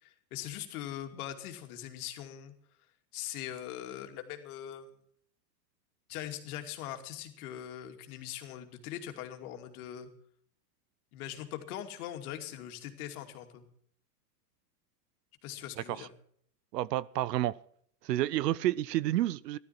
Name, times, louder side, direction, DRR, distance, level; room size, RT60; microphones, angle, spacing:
voice 1, 0.0-2.5 3.1-4.9 6.1-10.1 11.1-13.6 15.4-16.1, left 11 dB, 60° left, 2.7 m, -41 dB
voice 2, 16.7-17.6 18.0-19.6, right 14 dB, 80° right, 0.8 m, -30 dB
15.0 x 12.5 x 5.9 m
hypercardioid pair, 120°, 48 cm